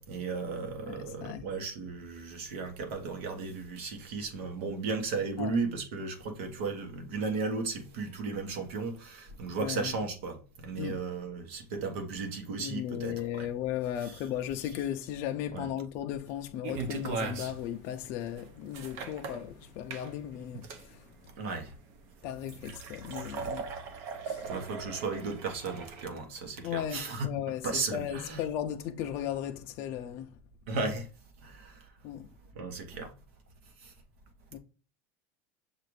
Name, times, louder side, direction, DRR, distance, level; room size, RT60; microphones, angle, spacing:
voice 1, 0.0-13.5 14.0-14.1 15.5-15.7 21.4-21.7 24.4-28.4 30.7-31.1 31.4-31.8 32.5-33.1 33.8-33.9, right 4 dB, 70° right, 1.2 m, -35 dB
voice 2, 0.9-1.4 5.4-5.5 9.6-9.9 10.8-11.0 12.6-20.6 20.9-21.0 22.2-23.7 24.2-24.5 26.6-30.3 32.0-32.3 34.5-34.6, left 10 dB, 40° left, 0.4 m, -36 dB
sound 1, 16.6-26.0, right 5 dB, 45° right, 0.6 m, -39 dB
6.6 x 2.4 x 3.1 m
supercardioid pair, 165°, 7 cm